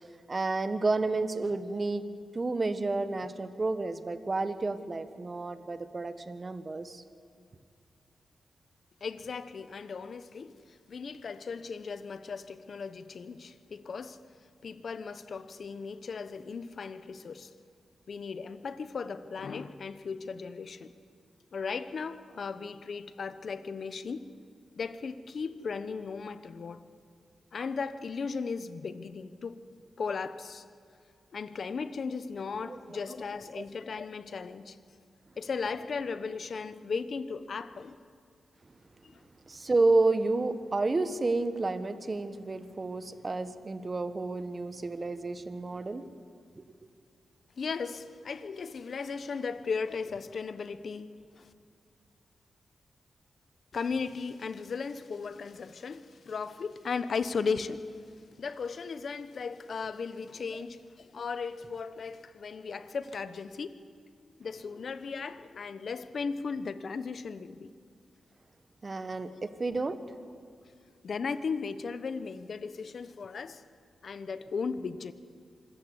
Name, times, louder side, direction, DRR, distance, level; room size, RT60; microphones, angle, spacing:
voice 1, 0.3-2.0 2.3-7.0 32.7-33.0 33.6-33.7 39.5-46.0 46.5-46.6 68.8-70.0, right 3 dB, 35° right, 1.3 m, -30 dB
voice 2, 9.0-14.2 14.6-17.5 18.1-20.9 21.5-24.3 24.8-26.8 27.5-29.7 30.0-30.6 31.3-34.8 35.4-38.0 39.0-39.2 47.6-51.5 53.7-57.9 58.4-63.8 64.4-67.7 69.3-69.4 71.0-73.6 74.0-75.1, left 5 dB, 60° left, 1.0 m, -36 dB
25.5 x 14.5 x 8.3 m
cardioid pair, 95°, 0 cm